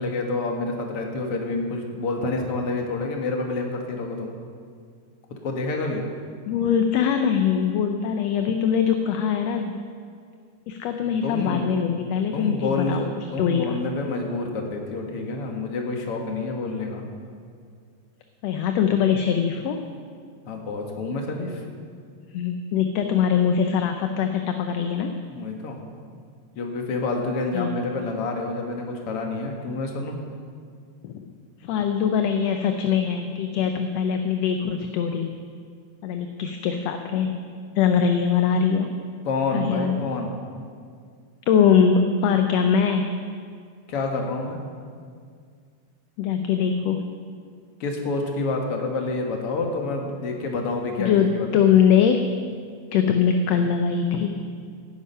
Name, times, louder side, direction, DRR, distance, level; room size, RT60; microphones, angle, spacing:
voice 1, 0.0-4.3 5.4-6.0 11.2-11.8 12.3-17.0 20.5-21.6 25.3-25.8 26.5-30.2 39.3-40.4 43.9-44.6 47.8-51.5, left 3 dB, 55° left, 2 dB, 2.4 m, -28 dB
voice 2, 6.5-9.8 10.7-13.8 18.4-19.8 22.3-25.1 27.5-27.7 31.0-31.3 31.6-35.3 36.0-37.4 37.8-38.9 39.5-40.0 41.5-43.1 46.2-47.1 51.0-52.3 52.9-54.3, left 7 dB, 75° left, 5 dB, 1.8 m, -22 dB
18.0 x 9.8 x 5.6 m, 2.1 s
omnidirectional pair, 3.3 m